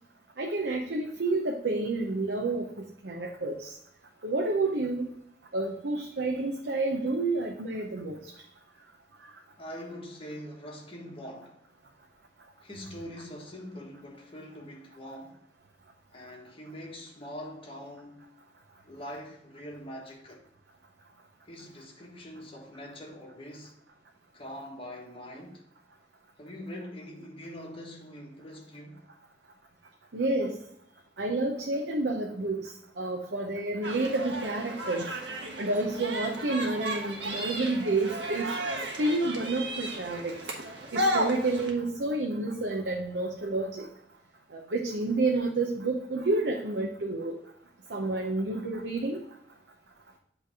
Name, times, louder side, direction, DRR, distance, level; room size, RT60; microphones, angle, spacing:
voice 1, 0.4-2.7 3.0-3.7 4.2-5.1 5.5-8.2 30.1-30.6 31.2-35.1 35.6-38.5 39.0-40.4 40.9-43.9 44.5-47.4 47.9-49.2, right 2 dB, 70° right, 0.7 m, -29 dB
voice 2, 9.6-11.7 12.6-15.4 16.1-18.4 18.8-20.4 21.5-23.8 24.3-25.6 26.4-29.0, equal, 30° left, 1.4 m, -43 dB
sound 1, 33.8-41.7, right 1 dB, 85° right, 1.3 m, -34 dB
8.1 x 3.3 x 4.7 m
head